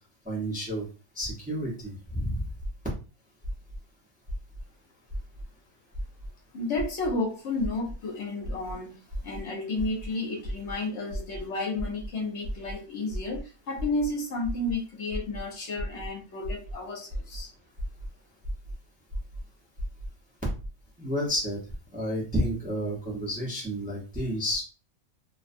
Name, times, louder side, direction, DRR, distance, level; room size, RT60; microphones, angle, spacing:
voice 1, 0.2-0.9 1.1-2.4 21.0-21.6 21.9-24.6, equal, 10° right, -4 dB, 0.6 m, -30 dB
sound 1, 2.6-2.9 3.4-3.8 4.3-4.6 5.1-5.4 5.9-6.3 6.8-7.1 7.6-7.9 8.4-8.7 9.1-9.4 9.8-10.1 10.4-10.7 11.1-11.4 11.8-12.1 12.4-12.7 13.1-13.4 13.8-14.1 14.4-14.7 15.1-15.4 15.8-16.1 16.4-16.7 17.1-17.4 17.8-18.1 18.4-18.7 19.1-19.4 19.8-20.1 20.4-20.7, equal, 60° right, 0.9 m, -34 dB
voice 2, 6.5-17.5, left 2 dB, 70° left, 0 dB, 1.0 m, -32 dB
2.5 x 2.2 x 2.5 m, 0.33 s
omnidirectional pair, 1.3 m